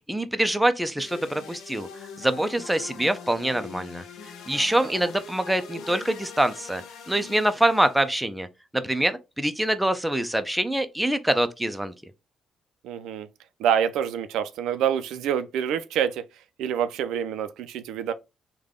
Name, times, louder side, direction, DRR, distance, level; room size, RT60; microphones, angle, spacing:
voice 1, 0.1-1.9 2.2-4.0 4.5-8.5 8.7-11.9, right 1 dB, 5° right, 0.4 m, -25 dB
sound 1, 1.0-8.1, left 6 dB, 85° left, 0.6 m, -42 dB
voice 2, 4.5-4.9 12.8-13.3 13.6-16.2 16.6-18.1, right 9 dB, 90° right, 0.3 m, -27 dB
3.3 x 2.2 x 3.6 m
cardioid pair, 90°, 0 cm